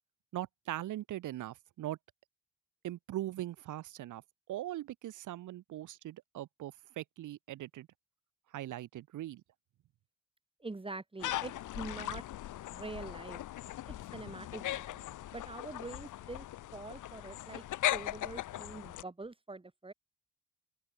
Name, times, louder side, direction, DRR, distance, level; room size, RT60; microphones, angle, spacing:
voice 1, 0.3-2.0 2.8-4.2 4.5-7.9 8.5-9.4, right 14 dB, 80° right, 3.7 m, -40 dB
voice 2, 10.6-12.2 12.7-13.4 13.9-15.1 15.3-16.5 16.7-17.6 17.9-19.9, right 2 dB, 20° right, 5.4 m, -45 dB
sound 1, 11.2-19.0, left 14 dB, 80° left, 4.2 m, -39 dB
open air
cardioid pair, 90°, 30 cm